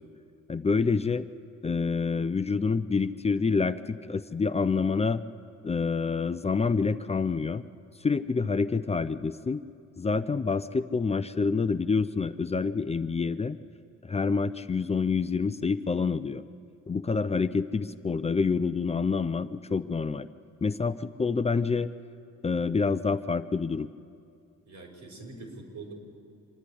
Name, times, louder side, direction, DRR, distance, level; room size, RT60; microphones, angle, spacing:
voice 1, 0.5-1.3 1.6-5.2 5.6-7.6 8.0-9.6 10.0-13.6 14.0-16.4 16.9-20.3 20.6-21.9 22.4-23.9, left 4 dB, 20° left, 11 dB, 0.5 m, -27 dB
voice 2, 24.7-25.9, right 3 dB, 85° right, 0 dB, 5.3 m, -44 dB
26.0 x 10.5 x 10.0 m, 2.5 s
cardioid pair, 90°, 30 cm